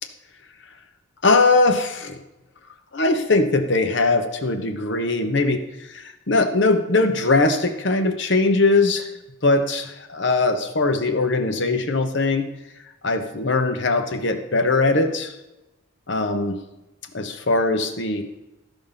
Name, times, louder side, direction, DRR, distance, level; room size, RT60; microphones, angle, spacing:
voice 1, 1.2-2.2 2.9-5.6 5.9-9.1 9.4-12.4 13.0-15.3 16.1-16.6 17.1-18.2, left 3 dB, 55° left, 7 dB, 1.0 m, -20 dB
13.5 x 5.3 x 5.7 m, 0.97 s
head